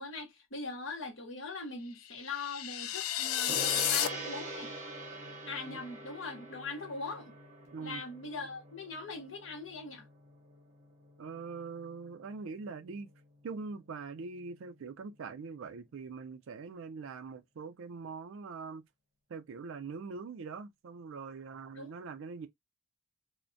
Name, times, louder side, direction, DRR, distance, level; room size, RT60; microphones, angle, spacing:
voice 1, 0.0-4.7 5.5-7.4 7.8-10.1 21.7-21.9, left 3 dB, 60° left, 0.8 m, -41 dB
sound 1, 2.1-4.1, left 12 dB, 75° left, 0.3 m, -32 dB
Gong, 3.5-13.2, right 2 dB, 35° right, 0.7 m, -45 dB
voice 2, 11.2-13.1 13.4-18.8 19.3-22.5, right 4 dB, 65° right, 0.4 m, -43 dB
2.5 x 2.1 x 2.5 m
head